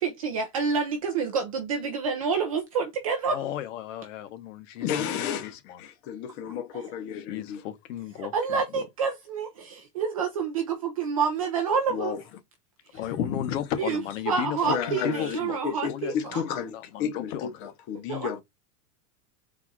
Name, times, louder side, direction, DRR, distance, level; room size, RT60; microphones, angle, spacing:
voice 1, 0.0-3.4 6.7-6.9 8.2-12.2 13.8-14.0 14.3-16.4 18.1-18.4, right 5 dB, 25° right, 0.4 m, -28 dB
voice 2, 3.3-5.8 7.2-8.9 13.0-16.1 16.7-17.7, left 11 dB, 55° left, 0.9 m, -35 dB
voice 3, 4.8-7.6 11.9-12.2 13.0-13.6 14.6-18.4, left 8 dB, 25° left, 0.6 m, -32 dB
4.1 x 2.4 x 4.4 m
supercardioid pair, 170°, 46 cm